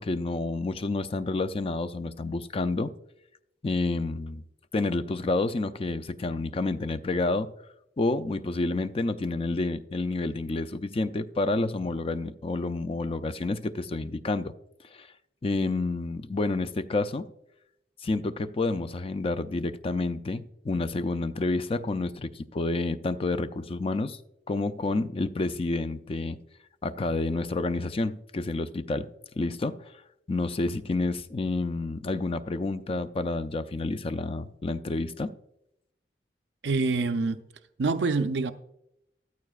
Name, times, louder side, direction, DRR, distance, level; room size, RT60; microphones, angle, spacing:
voice 1, 0.0-2.9 3.6-4.4 4.7-7.5 8.0-14.5 14.9-15.1 15.4-17.3 18.0-24.2 24.5-26.4 26.8-29.1 29.4-29.8 30.3-35.3, left 2 dB, 35° left, 0.4 m, -29 dB
voice 2, 36.6-37.4 37.8-38.5, right 3 dB, 75° right, 0.5 m, -26 dB
14.0 x 13.5 x 2.4 m
head